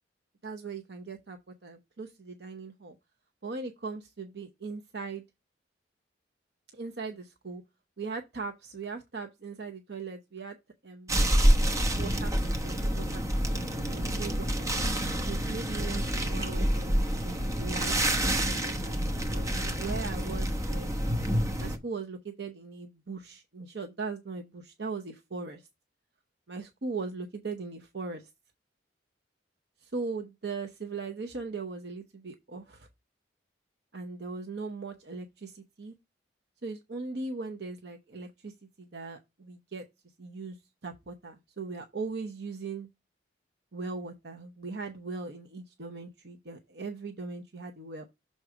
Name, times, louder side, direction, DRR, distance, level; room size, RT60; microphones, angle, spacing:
voice 1, 0.4-3.0 3.4-5.2 6.7-7.6 8.0-10.6 10.8-11.2 11.9-14.9 15.2-19.0 19.3-20.9 21.6-25.7 26.5-28.3 29.8-32.9 33.9-35.9 36.6-39.8 40.2-40.6 40.8-42.9 43.7-48.1, right 4 dB, 60° right, 0.8 m, -39 dB
sound 1, 11.1-21.8, equal, 15° right, 0.8 m, -28 dB
6.5 x 3.9 x 4.8 m
head